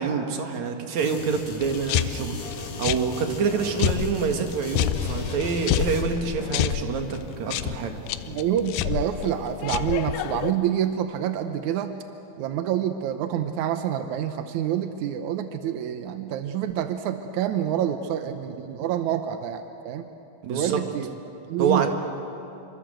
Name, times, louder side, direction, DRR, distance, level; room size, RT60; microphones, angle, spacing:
voice 1, 0.0-2.4 2.8-8.0 20.4-20.8 21.6-21.9, right 6 dB, 55° right, 4 dB, 2.6 m, -26 dB
sound 1, 1.0-6.0, left 3 dB, 55° left, 4.1 m, -38 dB
sound 2, 1.6-10.5, left 11 dB, 80° left, 2.6 m, -29 dB
voice 2, 8.3-12.0 12.4-20.1 20.5-21.1 21.5-21.9, right 10 dB, 75° right, 8 dB, 1.8 m, -27 dB
27.0 x 25.0 x 7.8 m, 2.8 s
omnidirectional pair, 4.4 m